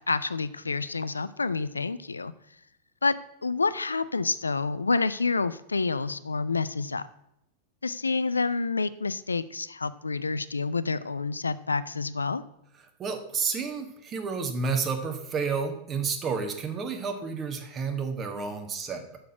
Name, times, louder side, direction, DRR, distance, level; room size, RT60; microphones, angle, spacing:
voice 1, 0.1-2.3 3.0-3.1 3.4-7.0 7.8-12.4, left 4 dB, 80° left, 15 dB, 0.4 m, -28 dB
voice 2, 13.0-19.0, right 5 dB, 25° right, 6 dB, 1.5 m, -30 dB
6.9 x 6.5 x 7.8 m, 0.79 s
figure-of-eight pair, 90°, 0 cm